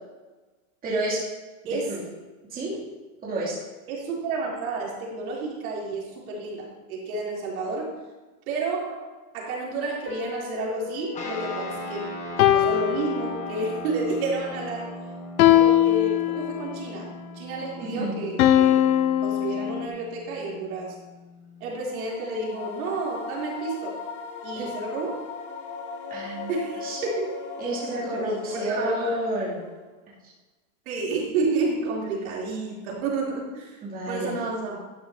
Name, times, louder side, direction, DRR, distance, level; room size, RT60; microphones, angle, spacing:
voice 1, 0.8-1.3 1.7-2.0 2.5-2.8 3.2-3.6 17.8-18.2 24.5-24.8 26.1-27.0 27.6-29.6 33.8-34.3, right 1 dB, 20° right, -7 dB, 2.7 m, -30 dB
voice 2, 1.7-2.0 3.9-7.9 8.5-9.0 9.3-12.1 12.5-15.0 15.4-17.1 17.3-18.8 19.2-20.9 21.6-24.0 24.4-25.2 26.5-27.3 27.8-29.0 30.9-33.8 34.1-34.8, right 3 dB, 75° right, -3 dB, 3.3 m, -30 dB
sound 1, 10.1-11.8 12.4-13.8 15.4-16.8 18.4-19.9, left 12 dB, 80° left, 0.8 m, -22 dB
sound 2, 11.1-21.8, left 1 dB, 15° left, 1.2 m, -39 dB
sound 3, 21.8-29.9, left 4 dB, 55° left, 1.7 m, -38 dB
11.5 x 10.0 x 2.8 m, 1.2 s
supercardioid pair, 155°, 43 cm